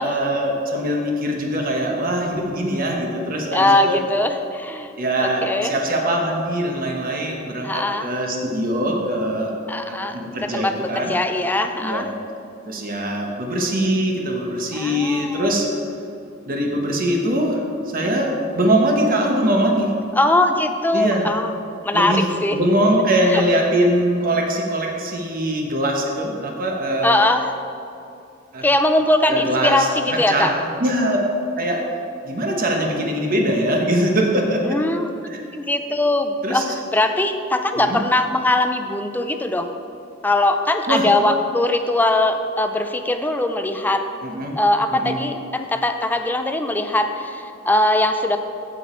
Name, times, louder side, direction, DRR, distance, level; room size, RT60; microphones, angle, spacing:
voice 1, 0.0-4.0 5.0-11.1 11.8-12.1 12.7-15.7 16.5-17.6 17.9-19.9 20.9-21.2 21.9-22.3 22.5-27.2 28.5-28.7 29.3-31.2 31.6-31.9 32.2-34.8 35.3-35.4 36.4-36.6 37.8-38.0 40.9-41.1 44.2-44.5 44.9-45.2, right 1 dB, 45° right, 0 dB, 1.2 m, -22 dB
voice 2, 3.5-4.9 5.2-5.7 7.6-8.1 9.7-10.1 10.4-12.1 14.7-15.5 20.1-21.5 21.8-22.6 23.3-23.4 27.0-27.5 28.6-30.5 34.7-35.1 35.5-36.6 36.9-39.7 40.2-44.1 44.6-48.4, left 1 dB, 10° left, 6 dB, 0.4 m, -21 dB
15.0 x 5.1 x 4.4 m, 2.6 s
head